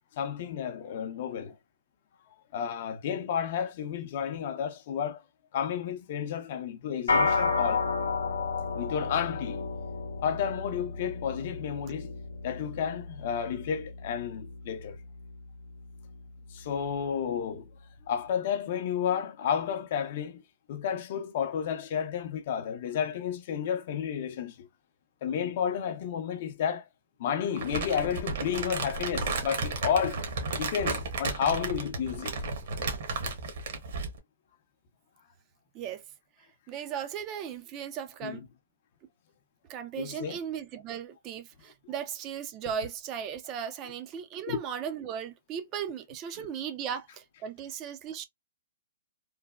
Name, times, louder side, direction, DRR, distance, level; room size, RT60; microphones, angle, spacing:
voice 1, 0.2-1.6 2.5-5.2 5.5-7.8 8.7-9.7 10.2-12.1 12.4-15.0 16.5-17.7 18.1-20.4 20.7-24.7 25.2-26.9 27.2-30.2 30.6-32.4 38.2-38.4 40.0-40.4 44.5-44.6, left 8 dB, 50° left, 0.5 m, -31 dB
sound 1, 7.1-16.6, left 4 dB, 85° left, 0.7 m, -32 dB
Crumpling crinkling, 27.6-34.2, right 4 dB, 60° right, 1.0 m, -33 dB
voice 2, 36.7-38.4 39.7-48.2, right 8 dB, 25° right, 0.4 m, -37 dB
3.2 x 2.1 x 2.2 m
hypercardioid pair, 145°, 0 cm